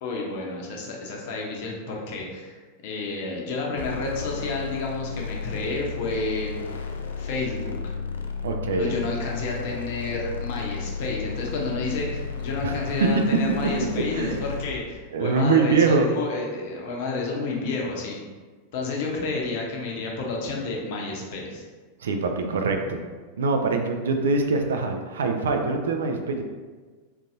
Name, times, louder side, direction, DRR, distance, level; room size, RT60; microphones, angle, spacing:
voice 1, 0.0-6.6 7.2-8.0 8.8-18.2 18.7-21.6, left 3 dB, 50° left, -1 dB, 0.7 m, -30 dB
sound 1, 3.8-14.8, left 5 dB, 65° left, 0.3 m, -33 dB
voice 2, 8.4-9.0 12.6-12.7 14.1-14.4 15.1-16.1 22.0-23.0 23.4-26.4, right 4 dB, 65° right, 4 dB, 0.4 m, -23 dB
3.8 x 2.6 x 2.7 m, 1.4 s
figure-of-eight pair, 90°, 0 cm